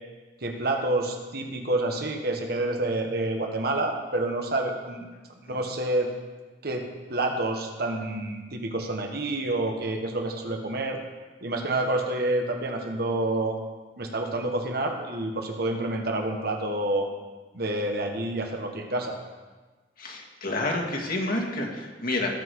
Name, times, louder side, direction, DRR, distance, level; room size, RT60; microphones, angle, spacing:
voice 1, 0.4-5.1 5.4-6.1 6.6-11.0 11.4-13.6 14.0-17.1 17.5-19.2, right 2 dB, 60° right, 3 dB, 1.5 m, -28 dB
voice 2, 20.0-22.3, left 2 dB, 55° left, 0 dB, 2.0 m, -29 dB
18.5 x 6.3 x 4.8 m, 1.3 s
head